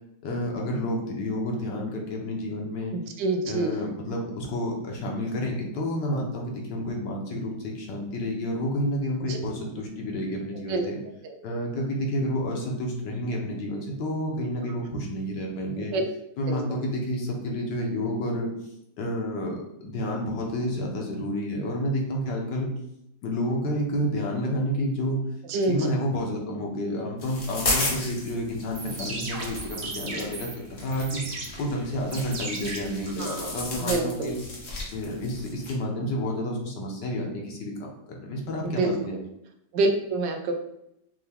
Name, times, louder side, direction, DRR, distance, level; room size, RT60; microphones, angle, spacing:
voice 1, 0.2-3.0 3.4-11.0 11.4-16.0 16.4-18.5 19.0-22.7 23.2-25.2 25.6-30.5 30.8-31.2 31.6-34.4 34.9-39.2, equal, 75° left, 0 dB, 1.5 m, -30 dB
voice 2, 2.9-3.7 9.3-9.4 10.7-10.9 15.9-16.0 16.5-16.8 25.5-25.9 33.2-34.3 38.6-39.0 39.7-40.5, right 3 dB, 80° right, 4 dB, 1.3 m, -27 dB
sound 1, 27.2-35.7, left 2 dB, 45° left, 1.0 m, -34 dB
sound 2, 28.6-33.6, right 2 dB, 55° right, 0.6 m, -37 dB
5.8 x 2.2 x 3.4 m, 0.78 s
omnidirectional pair, 1.9 m